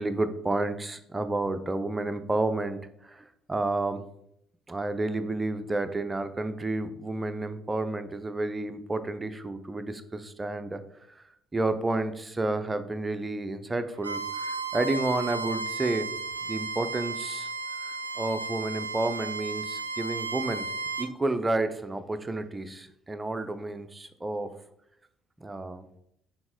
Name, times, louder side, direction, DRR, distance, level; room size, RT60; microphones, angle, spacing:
voice 1, 0.0-4.0 4.7-10.8 11.1-11.2 11.5-16.1 16.5-17.5 17.8-20.7 21.0-24.5 25.4-25.9, right 2 dB, 20° right, 10 dB, 0.5 m, -30 dB
Bowed string instrument, 14.0-21.1, right 4 dB, 85° right, 0.3 m, -34 dB
6.0 x 4.3 x 3.7 m, 0.75 s
figure-of-eight pair, 50°, 0 cm